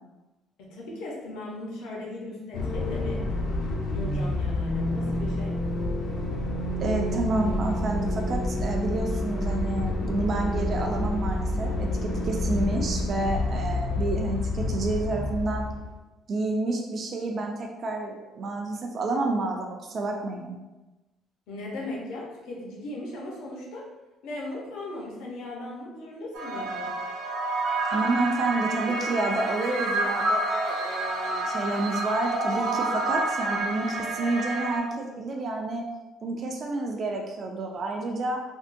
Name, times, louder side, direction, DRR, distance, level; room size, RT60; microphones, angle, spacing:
voice 1, 0.6-3.3 3.9-5.6 21.5-23.9 24.2-27.0, left 1 dB, 75° left, -2 dB, 0.8 m, -37 dB
sound 1, 2.5-16.0, left 1 dB, 45° left, 0.4 m, -28 dB
voice 2, 6.8-15.7 16.3-20.6 27.9-35.8 36.2-38.4, right 2 dB, 35° right, 1 dB, 0.3 m, -29 dB
sound 2, 26.3-34.8, right 2 dB, 90° right, 0.6 m, -29 dB
3.5 x 2.1 x 2.6 m, 1.1 s
cardioid pair, 170°, 0 cm